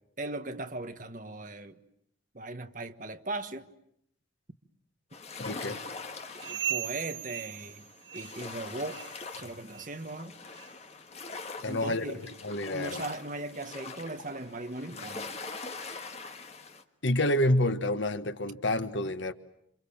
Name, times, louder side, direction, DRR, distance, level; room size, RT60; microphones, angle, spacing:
voice 1, 0.2-1.8 2.3-3.7 5.7-5.9 6.4-7.9 8.1-9.0 9.3-10.3 11.7-12.2 12.7-15.4, right 2 dB, 40° right, 1.4 m, -38 dB
sound 1, 5.1-16.8, left 4 dB, 35° left, 1.6 m, -43 dB
voice 2, 5.4-5.8 11.6-12.1 12.4-13.0 17.0-19.3, left 1 dB, 70° left, 1.4 m, -28 dB
sound 2, 6.4-8.6 8.9-9.3 9.7-9.9 10.5-10.7 11.4-11.5 12.2-12.3, right 11 dB, 65° right, 1.3 m, -38 dB
28.5 x 28.0 x 7.2 m
head